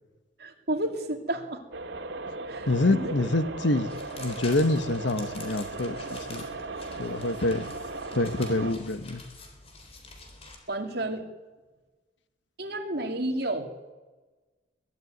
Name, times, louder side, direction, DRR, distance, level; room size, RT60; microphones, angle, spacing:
voice 1, 0.4-1.6 2.5-3.1 10.7-11.2 12.6-13.7, right 1 dB, 60° right, 4 dB, 2.8 m, -31 dB
sound 1, 1.7-8.7, right 3 dB, 85° right, 2.4 m, -37 dB
voice 2, 2.7-3.9 4.2-6.5 7.0-7.7 8.1-9.2, left 2 dB, 80° left, 11 dB, 1.4 m, -26 dB
sound 2, 3.9-10.6, left 3 dB, 35° left, 3.9 m, -47 dB
22.5 x 14.0 x 9.4 m, 1.2 s
head